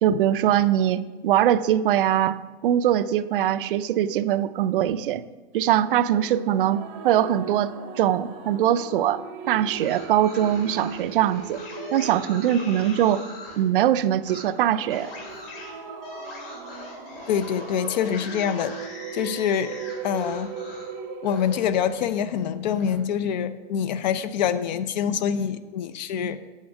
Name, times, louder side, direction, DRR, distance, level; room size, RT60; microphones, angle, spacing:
voice 1, 0.0-5.2 5.5-11.6 11.9-13.2 13.6-15.1, right 11 dB, 60° right, 14 dB, 0.4 m, -22 dB
sound 1, 6.0-22.0, right 5 dB, 25° right, 0.7 m, -39 dB
sound 2, 9.6-13.6 14.2-14.5 14.9-20.9 21.2-23.0, left 3 dB, 70° left, 2.6 m, -42 dB
voice 2, 17.3-18.7 19.1-19.8 20.0-20.5 21.2-26.4, left 8 dB, 45° left, 13 dB, 0.5 m, -25 dB
9.3 x 6.4 x 4.7 m, 1.3 s
supercardioid pair, 160°, 30 cm